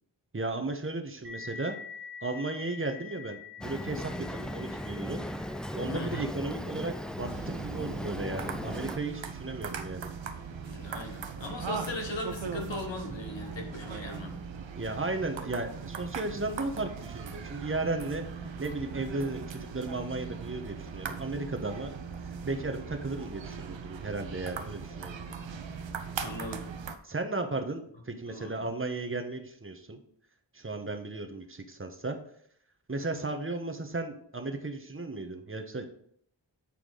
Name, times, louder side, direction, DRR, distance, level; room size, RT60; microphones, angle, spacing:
voice 1, 0.3-1.8 2.2-5.2 5.7-10.1 14.7-18.2 18.6-22.0 22.4-25.2 27.0-30.0 30.5-32.2 32.9-35.9, right 2 dB, 30° right, 6 dB, 1.1 m, -35 dB
sound 1, 1.2-10.5, left 6 dB, 60° right, 1.2 m, -49 dB
Boat Water vehicle, 3.6-9.0, equal, ahead, 0.4 m, -37 dB
voice 2, 5.9-6.3 10.6-14.4 26.2-26.7 28.3-28.6, left 2 dB, 75° left, 3 dB, 1.4 m, -38 dB
sound 2, 7.3-27.0, right 6 dB, 80° right, 0.7 m, -39 dB
8.5 x 4.5 x 3.9 m, 0.65 s
cardioid pair, 45°, 45 cm